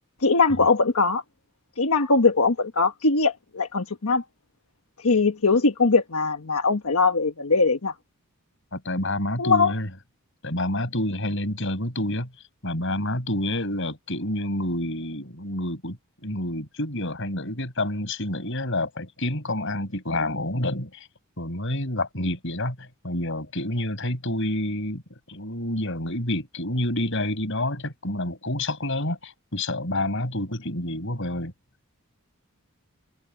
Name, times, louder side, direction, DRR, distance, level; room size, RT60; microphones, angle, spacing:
voice 1, 0.2-1.2 1.8-4.2 5.0-7.9 9.4-9.7, left 4 dB, 90° left, 1.4 m, -21 dB
voice 2, 8.7-9.9 10.4-12.3 12.6-21.1 21.4-25.0 25.3-31.5, left 1 dB, 60° left, 7.3 m, -28 dB
open air
head